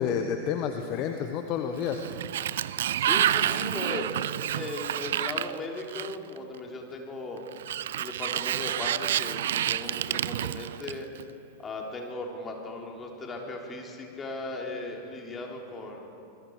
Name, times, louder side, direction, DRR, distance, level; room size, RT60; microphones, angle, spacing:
voice 1, 0.0-2.0, left 7 dB, 40° left, 6 dB, 1.2 m, -29 dB
Sliding door, 1.7-6.4 7.5-11.2, right 11 dB, 60° right, 0.4 m, -29 dB
voice 2, 3.0-4.1 4.5-7.4 8.0-11.1 11.6-16.1, left 2 dB, 20° left, 0 dB, 3.5 m, -37 dB
26.0 x 21.0 x 4.9 m, 2.7 s
figure-of-eight pair, 90°, 0 cm